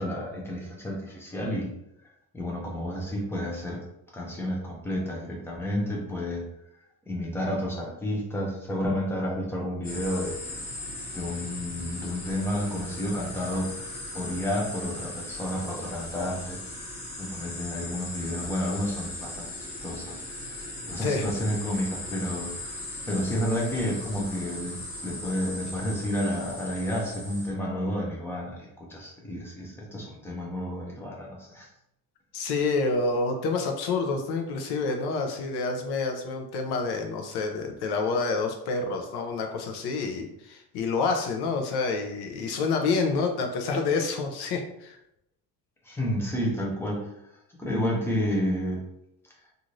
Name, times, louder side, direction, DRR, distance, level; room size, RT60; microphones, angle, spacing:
voice 1, 0.0-1.7 2.3-3.8 4.1-6.5 7.1-10.4 11.1-13.7 14.1-16.6 17.2-20.6 20.9-31.7 45.8-47.1 47.6-48.8, equal, 5° left, -2 dB, 0.4 m, -31 dB
sound 1, 9.8-27.5, left 1 dB, 20° left, 0.8 m, -38 dB
voice 2, 32.3-45.0, left 4 dB, 75° left, 4 dB, 0.6 m, -28 dB
2.5 x 2.5 x 3.0 m, 0.81 s
cardioid pair, 175°, 40 cm